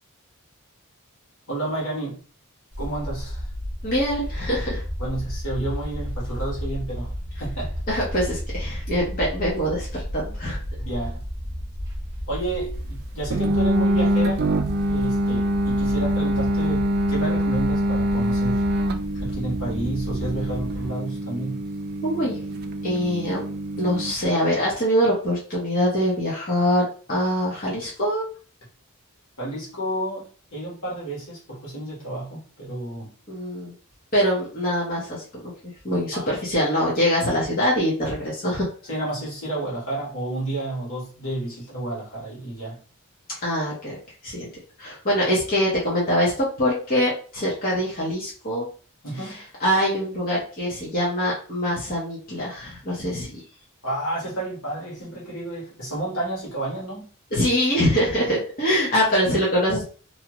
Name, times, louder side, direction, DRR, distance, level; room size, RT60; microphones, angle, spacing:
voice 1, 1.5-2.2 2.8-3.5 5.0-7.1 7.4-7.8 10.8-11.2 12.3-14.4 14.9-18.6 19.2-21.6 29.4-33.1 36.1-36.3 38.9-42.8 49.0-49.4 53.8-57.1, right 1 dB, 70° left, 1.3 m, -31 dB
sound 1, 2.7-20.9, equal, 20° right, 0.9 m, -33 dB
voice 2, 3.8-4.8 7.9-10.6 22.0-22.4 22.8-23.4 23.8-28.3 33.3-33.7 34.1-38.7 43.4-44.5 44.8-48.7 49.2-53.4 57.3-59.8, equal, 40° left, 1.0 m, -24 dB
sound 2, 13.3-24.1, equal, 45° right, 0.3 m, -24 dB
2.7 x 2.3 x 2.9 m
head